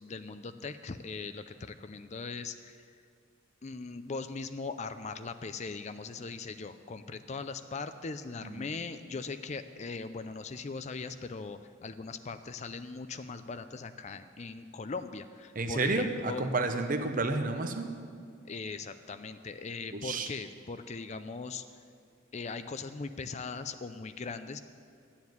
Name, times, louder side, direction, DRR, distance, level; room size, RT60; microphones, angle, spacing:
voice 1, 0.0-2.8 3.6-16.5 18.5-21.6 22.3-24.6, left 4 dB, 35° left, 10 dB, 0.4 m, -40 dB
voice 2, 15.5-17.9 19.9-20.3, right 3 dB, 40° right, 6 dB, 0.9 m, -31 dB
12.5 x 7.2 x 9.4 m, 2.3 s
head